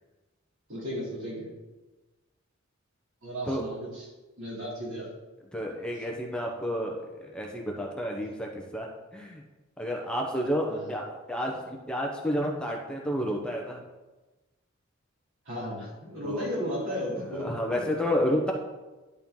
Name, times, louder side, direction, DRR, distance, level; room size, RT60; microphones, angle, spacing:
voice 1, 0.7-1.5 3.2-4.0 4.4-5.1 10.7-10.9 15.5-17.8, equal, 75° right, -4 dB, 2.7 m, -35 dB
voice 2, 5.5-9.4 9.8-13.8 16.2-16.5 17.1-18.5, equal, 5° left, 0 dB, 0.7 m, -31 dB
10.5 x 4.4 x 3.7 m, 1.1 s
head